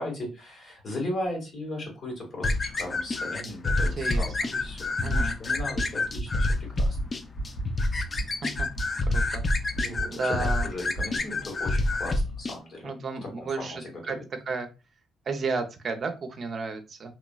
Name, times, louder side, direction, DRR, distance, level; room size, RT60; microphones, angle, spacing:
voice 1, 0.0-7.0 9.8-12.9 13.2-14.2, left 1 dB, 50° left, 0 dB, 1.9 m, -37 dB
sound 1, 2.4-12.6, left 2 dB, 35° left, 0.4 m, -28 dB
voice 2, 4.0-4.5 5.0-5.4 8.4-8.7 9.0-9.4 10.1-10.7 12.8-14.2 14.5-14.7 15.3-17.1, right 4 dB, 50° right, 6 dB, 0.6 m, -33 dB
sound 2, 5.1-5.2 5.5-5.8 6.1-6.4 6.7-7.0 7.3-7.6 7.9-8.2 8.5-8.8 9.1-9.4 9.7-10.0 10.3-10.6 10.9-11.2, right 2 dB, 90° left, 1.3 m, -31 dB
3.0 x 3.0 x 2.3 m, 0.28 s
cardioid pair, 90°, 0 cm